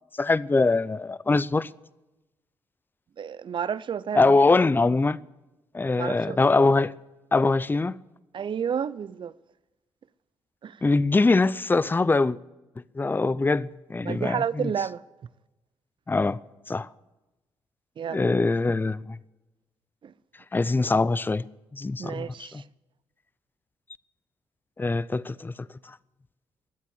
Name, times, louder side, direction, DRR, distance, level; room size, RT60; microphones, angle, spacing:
voice 1, 0.2-1.7 4.1-5.2 5.7-6.9 7.3-8.0 10.8-12.4 12.9-14.7 16.1-16.4 16.7-16.9 18.1-19.2 20.5-21.4 21.7-22.6 24.8-25.5, left 3 dB, 20° left, 0.5 m, -23 dB
voice 2, 3.2-4.4 6.0-6.4 8.3-9.3 10.6-10.8 14.0-15.0 18.0-18.3 20.0-20.1 22.0-22.6, right 7 dB, 50° right, 0.6 m, -31 dB
21.5 x 8.2 x 7.3 m
supercardioid pair, 55°, 10 cm